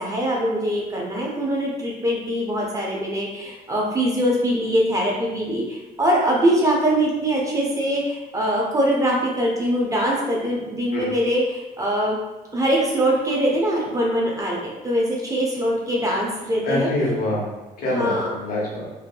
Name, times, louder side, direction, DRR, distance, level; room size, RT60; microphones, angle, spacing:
voice 1, 0.0-12.2 12.5-16.9 17.8-18.4, equal, 20° right, -3 dB, 0.5 m, -22 dB
voice 2, 16.6-17.5 17.8-18.9, left 1 dB, 55° left, -4 dB, 0.9 m, -25 dB
2.6 x 2.2 x 2.3 m, 1.1 s
cardioid pair, 110°, 17 cm